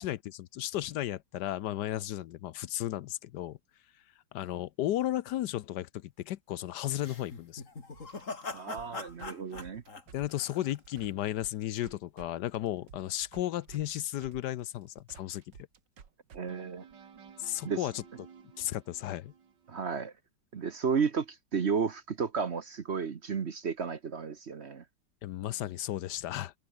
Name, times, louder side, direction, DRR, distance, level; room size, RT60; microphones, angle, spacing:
voice 1, 0.0-3.6 4.3-7.6 10.1-15.4 17.4-18.0 18.6-19.3 25.2-26.5, left 13 dB, 75° left, 1.2 m, -34 dB
sound 1, 7.0-11.1, left 3 dB, 45° left, 3.2 m, -42 dB
sound 2, 7.9-12.3 12.5-19.8, right 7 dB, 80° right, 2.5 m, -54 dB
voice 2, 8.5-9.8 16.3-16.8 17.6-17.8 19.7-20.1 20.5-24.8, right 6 dB, 45° right, 1.1 m, -33 dB
omnidirectional pair, 1.9 m